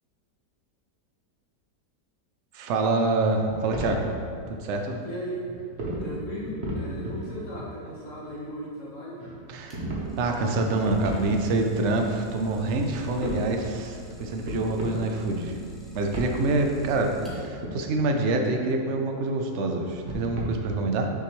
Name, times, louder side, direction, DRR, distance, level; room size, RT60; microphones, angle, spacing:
voice 1, 2.5-4.1 4.5-5.0 9.5-9.8 10.2-15.6 15.9-21.1, right 2 dB, 65° right, 3 dB, 0.7 m, -26 dB
sound 1, 3.5-4.1 5.0-5.1 5.5-6.0 6.4-7.3 7.6-8.5 9.1-10.1 10.3-11.7 11.9-12.0 12.2-13.5 14.1-14.2 14.4-15.1 15.3-15.7 16.1-16.3 16.9-17.7 18.5-19.6 19.9-20.4, right 1 dB, 45° right, 1.2 m, -34 dB
voice 2, 5.0-5.5 6.0-9.2, equal, 50° left, -6 dB, 1.5 m, -36 dB
Idling, 9.7-17.7, equal, ahead, 1.0 m, -46 dB
6.5 x 5.8 x 3.1 m, 2.2 s
omnidirectional pair, 1.8 m